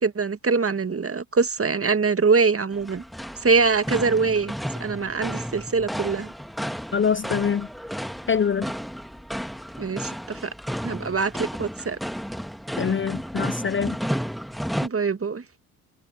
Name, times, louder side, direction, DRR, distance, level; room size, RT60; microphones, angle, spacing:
voice 1, 0.0-3.0 3.4-6.3 9.8-10.5 10.8-12.0 14.8-15.4, right 4 dB, 30° right, 1.8 m, -23 dB
sound 1, 2.7-14.9, equal, ahead, 1.7 m, -32 dB
voice 2, 6.9-7.7 8.3-8.7 12.8-14.0, left 6 dB, 25° left, 0.7 m, -24 dB
hypercardioid pair, 50°, 46 cm